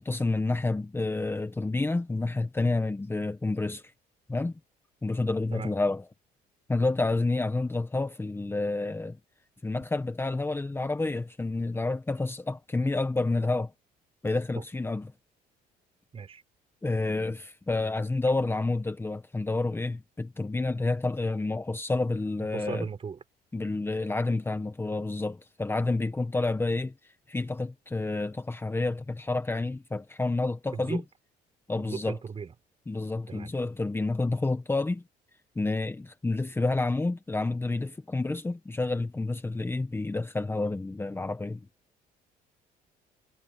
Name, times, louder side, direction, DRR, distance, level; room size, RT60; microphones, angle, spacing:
voice 1, 0.0-3.8 4.3-4.5 5.0-6.0 6.7-9.2 9.6-13.7 14.2-15.1 16.8-22.8 23.5-26.9 27.3-31.0 31.7-32.2 32.9-35.0 35.5-41.6, left 2 dB, 15° left, 1.4 m, -29 dB
voice 2, 22.5-23.2 30.7-31.0 31.7-32.5 33.3-33.5, right 6 dB, 35° right, 4.6 m, -37 dB
cardioid pair, 110°, 17 cm